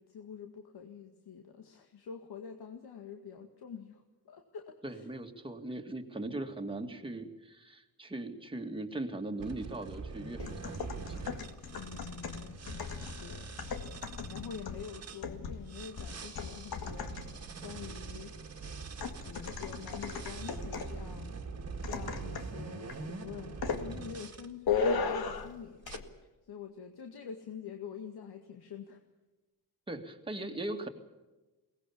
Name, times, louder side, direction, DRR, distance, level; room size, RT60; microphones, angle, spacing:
voice 1, 0.0-5.1 11.8-12.6 13.2-13.5 14.3-18.3 19.2-21.4 21.8-25.8 26.5-29.0, left 7 dB, 90° left, 4 dB, 2.1 m, -46 dB
voice 2, 4.8-11.2 29.9-30.9, right 2 dB, 15° right, 4 dB, 2.1 m, -39 dB
sound 1, 9.4-15.2 15.7-24.5 25.1-25.4 25.8-26.0, right 4 dB, 40° right, 1.9 m, -44 dB
sound 2, 10.4-17.5 19.0-21.0 21.8-22.6 22.9-23.1 23.6-23.9 24.7-25.6 25.9-26.0, left 5 dB, 70° left, 2.1 m, -37 dB
22.5 x 19.0 x 7.1 m, 1.1 s
wide cardioid pair, 165°, 37 cm